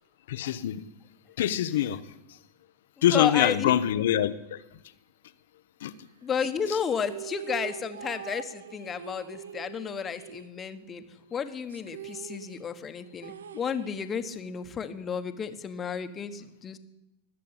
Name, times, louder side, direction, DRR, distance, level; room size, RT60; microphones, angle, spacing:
voice 1, 0.3-0.8 1.4-2.1 3.0-4.6 5.8-5.9, left 11 dB, 70° left, 14 dB, 0.9 m, -25 dB
voice 2, 3.0-3.7 6.2-16.8, left 7 dB, 25° left, 9 dB, 1.3 m, -32 dB
sound 1, 6.4-11.0 11.3-11.4 11.7-14.4, right 9 dB, 80° right, 0.7 m, -43 dB
20.0 x 7.6 x 8.9 m, 0.94 s
hypercardioid pair, 100°, 0 cm